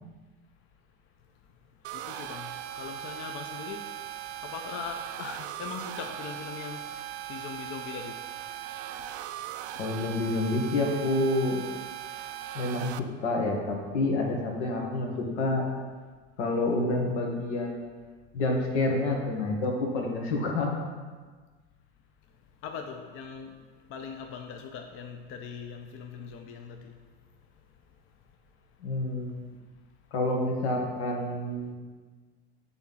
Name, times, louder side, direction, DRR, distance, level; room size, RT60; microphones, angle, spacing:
sound 1, 1.8-13.0, right 11 dB, 75° right, 0.5 m, -39 dB
voice 1, 1.9-3.9 4.4-8.2 22.6-23.5 23.9-27.0, left 6 dB, 40° left, 4 dB, 0.6 m, -40 dB
voice 2, 9.8-11.6 12.5-15.6 16.4-17.7 18.3-20.8 28.8-29.3 30.1-31.7, left 2 dB, 85° left, 0 dB, 1.7 m, -28 dB
7.1 x 4.1 x 5.5 m, 1.4 s
supercardioid pair, 120°, 33 cm